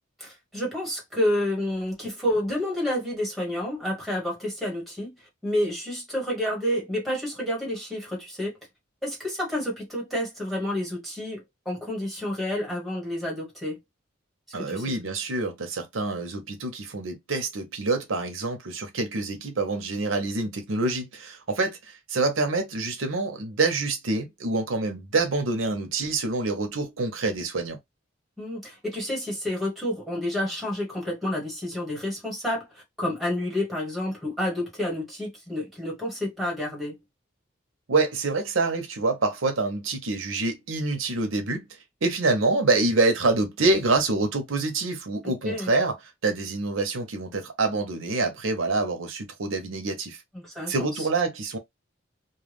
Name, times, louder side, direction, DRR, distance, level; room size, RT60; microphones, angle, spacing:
voice 1, 0.2-5.1 5.4-8.5 9.0-13.8 14.6-15.0 28.4-37.0 45.2-45.7 50.3-51.1, left 1 dB, ahead, 1.4 m, -29 dB
voice 2, 14.5-27.8 37.9-41.7 42.0-45.9 46.2-50.2 50.7-51.6, right 3 dB, 90° right, 0.8 m, -26 dB
2.3 x 2.2 x 3.4 m
head